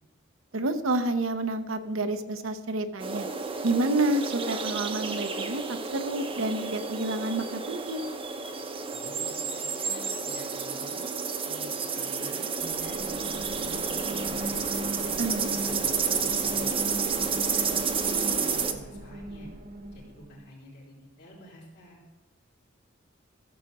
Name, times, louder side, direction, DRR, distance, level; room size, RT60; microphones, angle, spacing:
voice 1, 0.5-3.3 3.6-8.1 15.2-15.5, right 2 dB, 80° right, 8 dB, 0.9 m, -29 dB
sound 1, 3.0-18.7, right 5 dB, 30° right, 0.9 m, -31 dB
voice 2, 8.9-11.1 11.4-12.5 12.8-14.6 15.1-19.5 19.9-22.0, equal, 60° left, -4 dB, 3.6 m, -50 dB
sound 2, 12.6-20.4, right 1 dB, 50° right, 1.3 m, -39 dB
14.0 x 7.4 x 4.9 m, 1.2 s
head